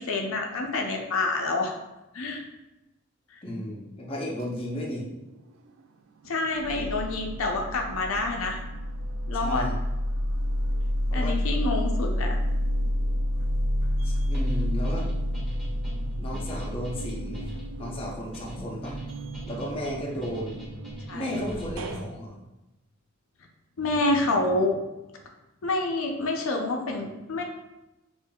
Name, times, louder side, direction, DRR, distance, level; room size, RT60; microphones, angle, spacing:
voice 1, 0.0-1.7 2.1-2.4 6.2-8.6 9.3-9.7 11.1-12.4 21.1-21.4 23.8-24.8 25.6-27.4, left 2 dB, 75° left, 2 dB, 0.5 m, -27 dB
voice 2, 3.4-5.1 6.7-6.9 9.3-9.7 11.1-11.5 14.0-15.1 16.2-17.5 17.8-19.0 19.5-20.6 21.1-22.4, equal, 25° left, -2 dB, 0.6 m, -34 dB
sound 1, 5.1-5.8 6.2-22.1, equal, 70° right, 0.3 m, -30 dB
sound 2, 14.3-22.2, equal, 5° left, 1.1 m, -41 dB
5.4 x 2.4 x 2.2 m, 0.99 s
head